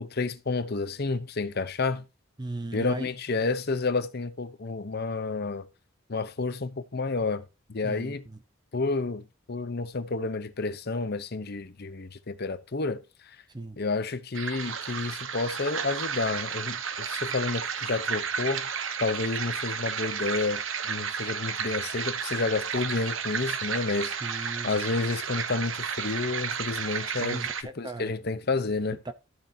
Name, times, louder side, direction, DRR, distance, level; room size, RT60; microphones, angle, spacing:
voice 1, 0.0-2.1 2.7-5.7 6.1-7.4 7.7-8.2 8.7-13.4 13.8-18.7 19.0-27.4 27.8-29.0, left 3 dB, 55° left, 0.8 m, -30 dB
voice 2, 2.4-3.1 7.8-8.4 13.5-13.8 24.2-24.7 27.2-28.1 29.0-29.1, right 2 dB, 20° right, 0.8 m, -37 dB
sound 1, 14.3-27.6, right 7 dB, 75° right, 1.0 m, -32 dB
12.5 x 7.5 x 2.8 m
head